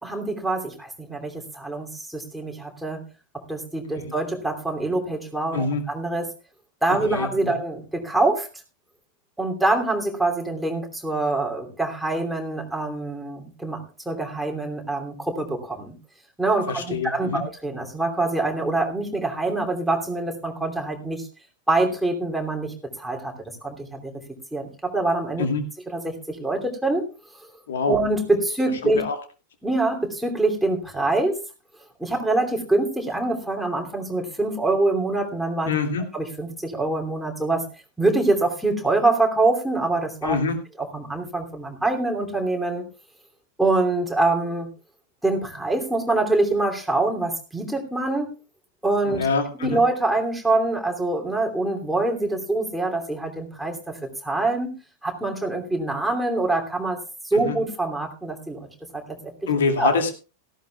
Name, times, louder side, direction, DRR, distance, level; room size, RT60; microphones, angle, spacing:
voice 1, 0.0-3.0 3.5-6.3 6.8-8.5 9.4-15.9 16.4-21.3 21.7-23.3 23.6-24.1 24.5-25.4 25.9-27.1 27.9-29.0 29.6-31.4 32.0-35.7 36.1-37.6 38.0-40.4 40.8-42.9 43.6-44.7 45.2-48.3 48.8-49.3 49.6-54.7 55.0-57.0 57.2-58.7 58.9-59.3 59.8-59.9, right 2 dB, ahead, 1 dB, 2.9 m, -25 dB
voice 2, 6.9-7.6 16.7-17.4 25.4-25.6 27.7-27.9 28.8-29.2 35.7-36.0 40.2-40.5 49.0-49.8 57.3-57.6 59.5-60.1, left 4 dB, 60° left, 5 dB, 2.4 m, -25 dB
17.5 x 15.0 x 2.4 m, 0.32 s
figure-of-eight pair, 90°, 0 cm